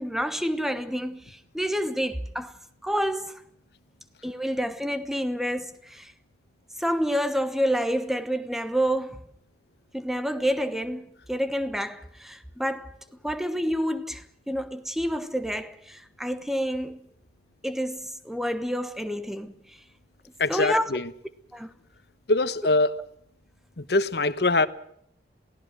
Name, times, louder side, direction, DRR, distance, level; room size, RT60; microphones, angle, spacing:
voice 1, 0.0-2.5 2.8-3.4 4.2-6.1 6.8-9.2 9.9-12.9 13.2-17.0 17.6-19.5 20.5-20.9 21.5-21.7, equal, ahead, 1.0 m, -28 dB
voice 2, 20.4-21.1 22.3-22.9 23.8-24.7, left 2 dB, 65° left, 1.1 m, -23 dB
28.0 x 17.5 x 6.2 m
head